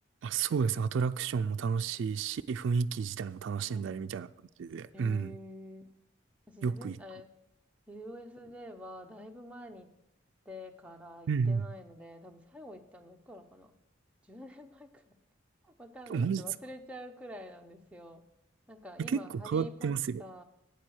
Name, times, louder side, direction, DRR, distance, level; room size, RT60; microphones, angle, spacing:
voice 1, 0.2-4.3 4.6-5.4 6.6-7.0 11.3-11.7 16.1-16.4 19.0-20.4, right 5 dB, 65° right, 0.3 m, -31 dB
voice 2, 3.7-4.1 4.9-5.9 6.5-7.3 7.9-9.9 10.4-13.7 14.2-15.1 15.6-18.2 18.7-19.9 20.2-20.4, left 1 dB, 5° right, 0.7 m, -47 dB
9.0 x 7.3 x 6.3 m
head